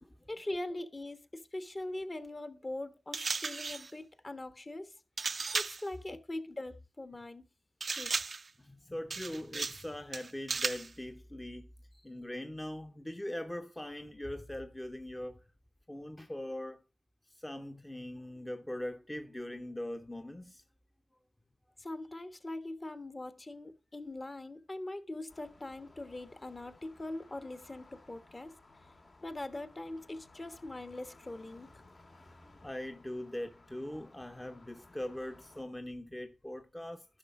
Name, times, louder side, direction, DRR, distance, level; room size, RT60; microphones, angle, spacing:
voice 1, 0.3-4.9 5.5-7.4 7.9-8.1 21.8-28.5 29.2-31.8, left 1 dB, 35° left, 1.3 m, -42 dB
sound 1, 3.1-3.9 5.2-5.9 7.8-8.5 9.1-9.9 10.1-10.9, right 4 dB, 55° right, 0.5 m, -35 dB
voice 2, 8.6-15.4 15.9-16.8 17.3-20.6 32.4-37.1, left 1 dB, 15° left, 0.8 m, -41 dB
sound 2, 25.3-35.6, left 2 dB, 55° left, 1.9 m, -59 dB
11.0 x 5.7 x 5.4 m
cardioid pair, 55°, 0 cm